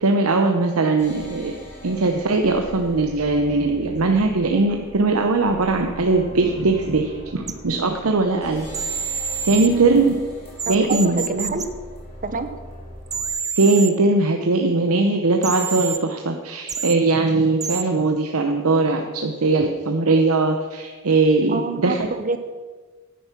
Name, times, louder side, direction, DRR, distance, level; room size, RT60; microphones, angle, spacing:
voice 1, 0.0-1.5 1.8-8.7 9.4-10.1 10.7-11.6 13.6-22.1, right 3 dB, 80° right, 4 dB, 0.8 m, -20 dB
sound 1, 1.0-13.3, equal, 10° left, 3.9 m, -40 dB
sound 2, 7.5-7.6 8.7-9.7 10.6-11.6 13.1-13.9 15.4-16.0 16.7-16.9 17.6-17.8, right 6 dB, 15° right, 0.5 m, -27 dB
voice 2, 10.7-11.7 12.2-12.5 21.5-22.4, right 4 dB, 40° right, 9 dB, 1.0 m, -27 dB
10.0 x 9.2 x 6.0 m, 1.4 s
head